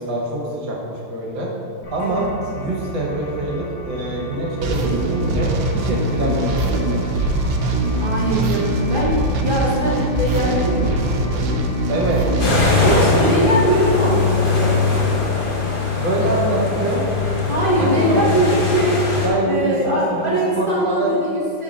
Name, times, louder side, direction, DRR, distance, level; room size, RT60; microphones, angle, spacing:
voice 1, 0.0-1.5 1.9-2.3 2.6-7.3 11.9-12.2 15.6-17.0 17.8-18.5 19.2-21.1, right 1 dB, 65° right, -3 dB, 1.9 m, -25 dB
sound 1, 1.8-12.6, right 1 dB, 60° left, 0.3 m, -33 dB
sound 2, 4.6-13.5, right 1 dB, 85° right, 1.6 m, -22 dB
voice 2, 8.0-11.3 12.8-14.8 17.4-21.6, right 1 dB, 30° right, -7 dB, 1.1 m, -21 dB
sound 3, 12.4-19.3, left 4 dB, 40° left, 0.7 m, -20 dB
5.8 x 4.5 x 5.1 m, 2.6 s
omnidirectional pair, 2.2 m